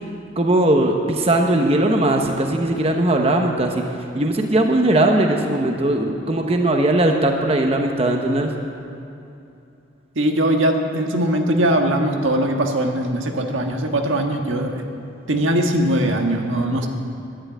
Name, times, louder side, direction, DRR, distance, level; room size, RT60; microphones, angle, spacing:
voice 1, 0.4-3.8 4.1-8.5 16.7-16.9, right 1 dB, 30° right, 3 dB, 0.9 m, -19 dB
voice 2, 10.1-14.8 15.3-16.9, right 1 dB, 85° right, 3 dB, 1.5 m, -20 dB
11.5 x 11.0 x 9.3 m, 2.7 s
head